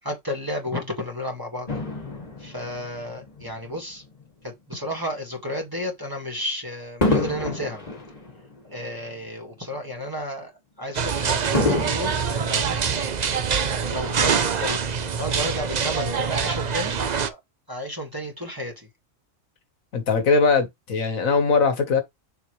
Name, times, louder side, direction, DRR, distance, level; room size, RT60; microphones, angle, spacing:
voice 1, 0.0-1.7 2.4-4.0 4.4-7.8 8.7-10.5 10.8-12.2 12.5-13.1 13.9-14.8 15.2-17.0 17.3-17.4 17.7-18.9, equal, 15° right, 1.9 m, -32 dB
Fireworks, 1.7-4.3 4.9-5.1 7.0-9.5 9.9-10.0 11.5-13.4 14.2-14.3, left 2 dB, 30° left, 1.6 m, -29 dB
sound 1, 10.9-17.3, right 6 dB, 45° right, 0.6 m, -25 dB
voice 2, 19.9-22.0, left 4 dB, 75° left, 1.7 m, -20 dB
6.7 x 4.6 x 3.2 m
omnidirectional pair, 1.4 m